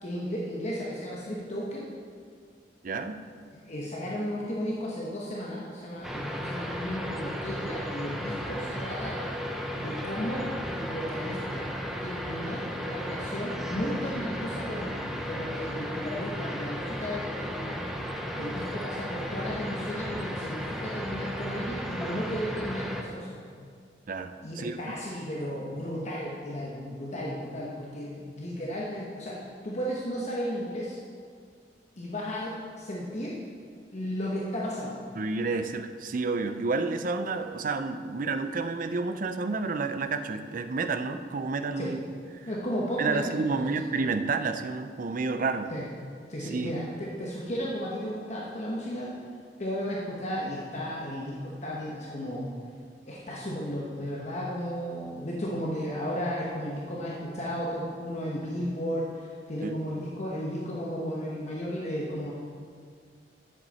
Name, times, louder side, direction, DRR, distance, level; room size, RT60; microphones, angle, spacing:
voice 1, 0.0-1.9 3.5-9.2 9.8-11.7 12.0-17.8 18.3-23.5 24.4-31.0 32.0-33.4 33.9-35.0 41.8-41.9 42.5-43.8 45.7-45.9 46.3-49.1 49.6-52.5 53.0-62.3, equal, 40° left, -4 dB, 1.1 m, -34 dB
voice 2, 2.8-3.2 24.1-24.8 35.2-42.0 43.0-45.7 46.5-46.7 59.6-59.8, right 4 dB, 50° right, 9 dB, 0.5 m, -30 dB
sound 1, 6.0-23.0, equal, ahead, 0.7 m, -34 dB
10.5 x 7.6 x 4.2 m, 2.1 s
head